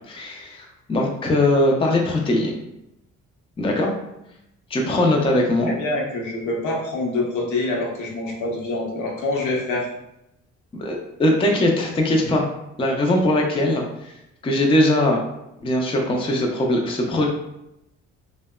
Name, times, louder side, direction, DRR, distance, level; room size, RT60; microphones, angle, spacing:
voice 1, 0.1-2.6 3.6-3.9 4.7-5.7 10.7-12.5 12.8-14.1 14.4-15.2 15.6-17.3, left 1 dB, 20° left, 0 dB, 0.4 m, -20 dB
voice 2, 5.7-9.9, left 2 dB, 75° left, -2 dB, 0.8 m, -25 dB
2.7 x 2.1 x 2.2 m, 0.86 s
cardioid pair, 90°, 30 cm